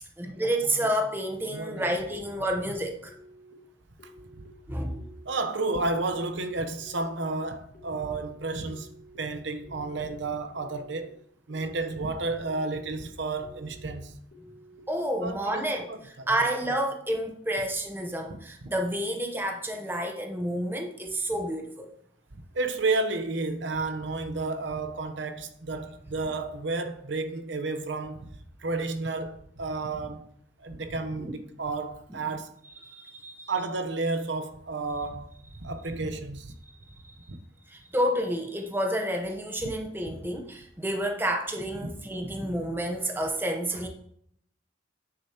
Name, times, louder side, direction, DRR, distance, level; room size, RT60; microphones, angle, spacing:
voice 1, 0.2-3.1 4.7-5.0 14.9-21.9 31.2-31.3 32.1-32.2 32.8-33.5 37.0-37.2 37.7-43.9, right 1 dB, 10° right, 0.8 m, -30 dB
voice 2, 1.5-1.9 4.3-4.4 5.2-11.1 11.5-14.2 15.2-16.3 22.3-28.3 28.6-30.3 30.6-32.5 33.5-35.3 35.6-36.5 37.3-37.4 39.6-39.7, right 3 dB, 70° right, 0.9 m, -32 dB
sound 1, 3.0-3.5 4.0-4.5 4.9-5.4 5.9-6.4 6.8-7.3 7.7-8.2 8.7-9.2 9.6-10.1 10.5-11.0 11.5-12.0 12.4-12.9 13.4-13.9 14.3-14.8, equal, 60° left, 2.4 m, -52 dB
9.1 x 6.8 x 2.9 m
head